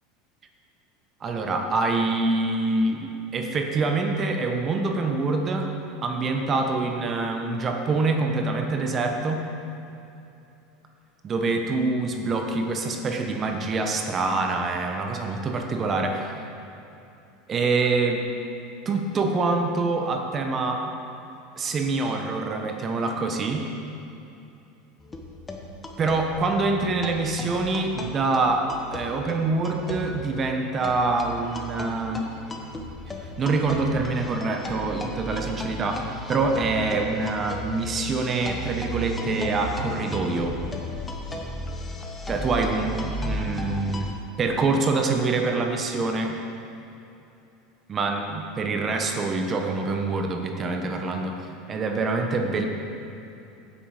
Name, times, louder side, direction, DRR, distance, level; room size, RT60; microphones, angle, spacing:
voice 1, 1.2-5.7 6.0-9.4 11.2-16.3 17.5-18.2 18.8-20.8 21.6-23.7 26.0-32.2 33.4-40.6 42.3-44.1 44.4-46.4 47.9-52.7, right 3 dB, 35° right, 4 dB, 1.1 m, -25 dB
sound 1, 25.0-44.1, left 1 dB, 15° left, 1.2 m, -35 dB
9.1 x 8.5 x 5.0 m, 2.8 s
hypercardioid pair, 90°, 0 cm